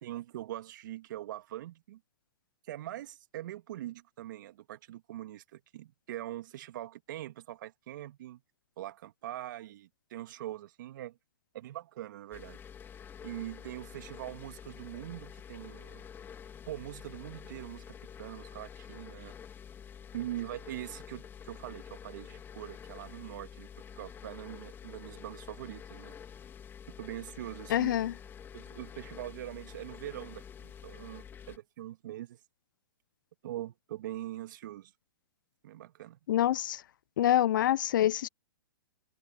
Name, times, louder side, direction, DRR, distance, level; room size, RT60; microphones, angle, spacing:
voice 1, 0.0-2.0 2.7-8.4 8.8-11.2 11.5-12.6 13.2-16.1 16.7-19.4 20.1-26.2 26.9-28.0 28.5-32.4 33.4-34.9 35.6-36.2, right 14 dB, 55° right, 2.7 m, -42 dB
sound 1, 12.3-31.6, left 8 dB, 15° left, 2.0 m, -48 dB
voice 2, 27.7-28.1 36.3-36.8 37.2-38.3, left 12 dB, 60° left, 0.8 m, -26 dB
hypercardioid pair, 125°, 12 cm